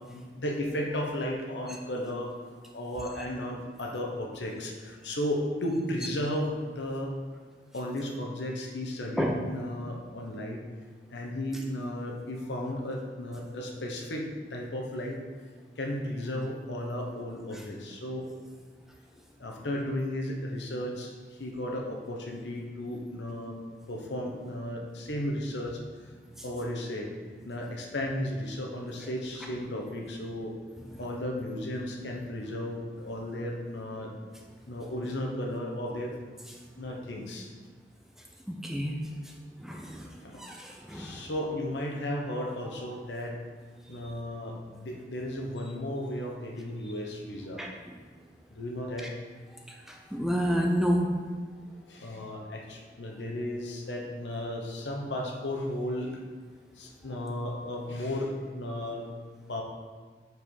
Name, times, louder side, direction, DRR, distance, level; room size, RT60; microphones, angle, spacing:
voice 1, 0.1-2.3 2.7-7.1 7.7-10.6 11.1-15.2 15.8-18.3 19.4-21.1 21.4-23.6 23.9-25.8 26.4-27.1 27.4-30.6 31.0-34.1 34.7-36.1 36.8-37.5 40.2-40.4 40.9-43.4 43.9-47.6 48.5-49.1 51.7-56.2 56.8-59.1 59.5-59.6, left 1 dB, 85° left, 0 dB, 1.0 m, -34 dB
voice 2, 38.5-38.9 39.6-40.1 40.4-41.1 47.6-47.7 50.1-51.1, equal, ahead, 0 dB, 0.5 m, -28 dB
5.5 x 4.6 x 4.7 m, 1.5 s
head